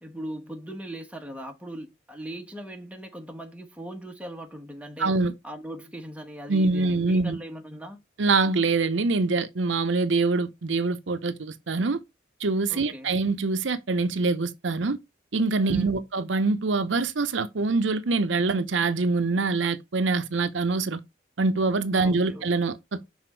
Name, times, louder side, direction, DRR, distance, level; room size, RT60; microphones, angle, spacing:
voice 1, 0.0-5.1 5.4-8.0 12.7-13.1 15.6-16.0 22.0-22.5, right 1 dB, 5° right, 1.1 m, -39 dB
voice 2, 5.0-5.3 6.5-7.4 8.2-12.0 12.4-15.0 15.3-21.0 21.4-23.0, right 3 dB, 80° right, 0.7 m, -24 dB
6.0 x 4.2 x 4.5 m
head